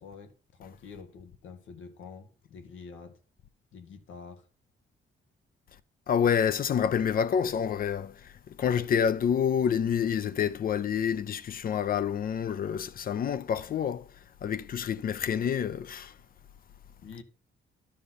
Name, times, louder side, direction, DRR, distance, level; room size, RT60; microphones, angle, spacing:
voice 1, 0.0-3.2 3.7-4.5 17.0-17.2, left 5 dB, 85° left, 1.5 m, -47 dB
voice 2, 6.1-8.2 8.5-14.0 14.4-16.1, left 8 dB, 45° left, 0.6 m, -28 dB
13.0 x 5.2 x 4.1 m
cardioid pair, 155°, 20 cm